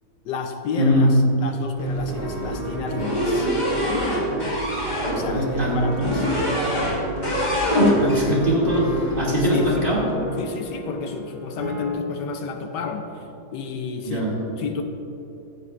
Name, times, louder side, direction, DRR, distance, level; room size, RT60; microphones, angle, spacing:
voice 1, 0.2-3.5 5.2-6.3 8.0-8.4 9.4-9.8 10.4-13.3 13.5-14.8, left 5 dB, 75° left, 5 dB, 1.3 m, -31 dB
voice 2, 0.8-1.1 5.1-5.8 8.0-10.0 14.0-14.3, equal, 30° right, -7 dB, 2.5 m, -22 dB
sound 1, 1.8-10.1, right 2 dB, 60° right, 1.5 m, -33 dB
sound 2, 2.1-11.9, right 1 dB, 80° right, 3.1 m, -34 dB
sound 3, 3.0-5.2 6.0-7.0 7.2-8.3, equal, 25° left, 2.1 m, -23 dB
14.5 x 9.1 x 2.4 m, 3.0 s
omnidirectional pair, 2.0 m